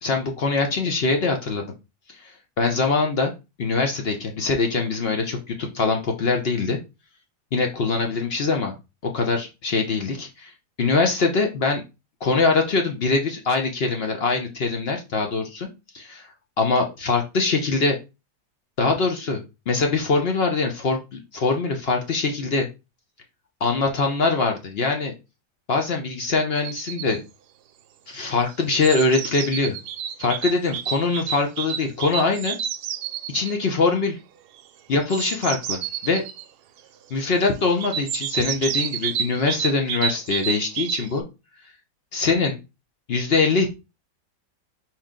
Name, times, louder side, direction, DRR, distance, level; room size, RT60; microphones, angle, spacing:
voice 1, 0.0-1.6 2.1-3.3 3.6-6.8 7.5-8.7 9.0-10.5 10.8-11.8 12.2-15.7 15.9-16.3 16.6-18.0 18.8-19.4 19.7-22.7 23.6-25.1 25.7-27.2 28.1-29.8 30.2-32.6 33.3-34.2 34.9-36.2 37.1-41.2 42.1-42.6 43.1-43.7, left 4 dB, 60° left, 4 dB, 0.6 m, -23 dB
sound 1, 26.5-27.2 28.3-33.6 34.9-36.5 37.8-41.2, right 9 dB, 75° right, 1.1 m, -30 dB
4.4 x 3.1 x 3.6 m, 0.26 s
omnidirectional pair, 1.8 m